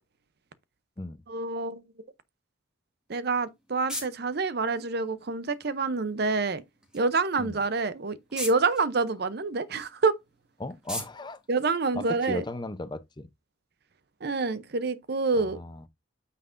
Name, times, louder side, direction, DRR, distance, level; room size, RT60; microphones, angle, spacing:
voice 1, 1.3-1.8 3.1-6.6 6.9-10.1 11.5-12.4 14.2-15.6, right 4 dB, 50° right, 0.6 m, -27 dB
sound 1, 3.1-12.5, left 1 dB, 5° right, 1.6 m, -44 dB
voice 2, 10.6-11.4 11.9-13.3 15.5-15.8, left 2 dB, 20° left, 0.6 m, -36 dB
9.1 x 5.8 x 2.5 m
head